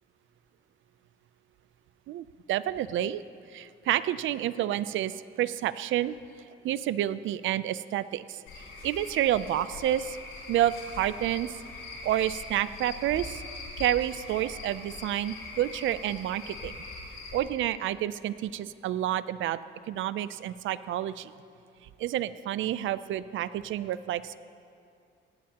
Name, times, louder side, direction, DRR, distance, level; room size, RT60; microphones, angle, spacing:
voice 1, 2.1-3.2 3.5-6.1 6.6-8.4 8.8-10.2 10.5-11.5 12.0-13.4 13.8-16.7 17.3-19.6 19.9-21.3 22.0-24.4, right 12 dB, 75° right, 15 dB, 0.5 m, -29 dB
Cricket / Frog, 8.5-17.4, left 3 dB, 70° left, 3.8 m, -42 dB
18.5 x 16.0 x 2.9 m, 2.4 s
cardioid pair, 90°, 20 cm